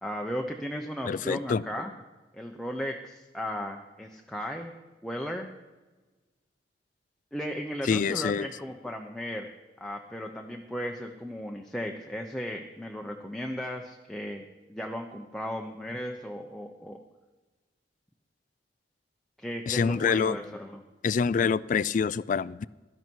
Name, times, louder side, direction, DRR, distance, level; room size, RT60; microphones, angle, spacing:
voice 1, 0.0-1.9 2.3-4.7 5.0-5.5 7.3-9.5 9.8-17.0 19.4-20.8, equal, 5° left, 1 dB, 0.9 m, -36 dB
voice 2, 1.1-1.6 7.8-8.5 19.7-20.4 21.0-22.6, left 6 dB, 45° left, 20 dB, 0.3 m, -26 dB
16.5 x 12.5 x 4.6 m, 1.2 s
head